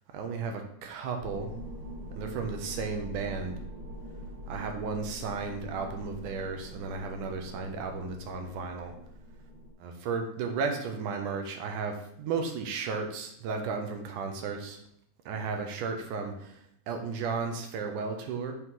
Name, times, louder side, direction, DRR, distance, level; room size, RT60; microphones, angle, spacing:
voice 1, 0.1-1.5 2.2-3.6 4.5-8.9 9.8-14.8 15.3-18.5, right 5 dB, 85° right, 4 dB, 2.4 m, -34 dB
sound 1, 1.2-9.7, equal, 45° right, 2.1 m, -43 dB
7.8 x 3.1 x 5.5 m, 0.70 s
omnidirectional pair, 3.6 m